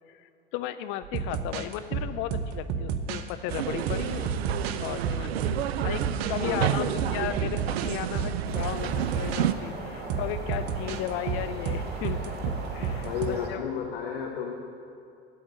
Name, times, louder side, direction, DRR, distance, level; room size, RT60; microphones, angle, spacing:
voice 1, 0.1-4.3 4.8-5.5 5.8-12.3 12.7-13.6, left 12 dB, 40° left, 11 dB, 0.4 m, -35 dB
sound 1, 1.0-3.3 3.9-6.4 7.0-7.9 8.1-9.5 10.1-13.3, right 6 dB, 50° right, 0.9 m, -31 dB
sound 2, 3.5-9.5, right 11 dB, 70° right, 0.5 m, -30 dB
voice 2, 6.4-7.4 13.0-14.5, left 7 dB, 60° left, 1 dB, 1.1 m, -33 dB
sound 3, 8.4-13.5, right 2 dB, 30° right, 2.4 m, -39 dB
8.6 x 8.6 x 8.8 m, 2.5 s
figure-of-eight pair, 75°, 33 cm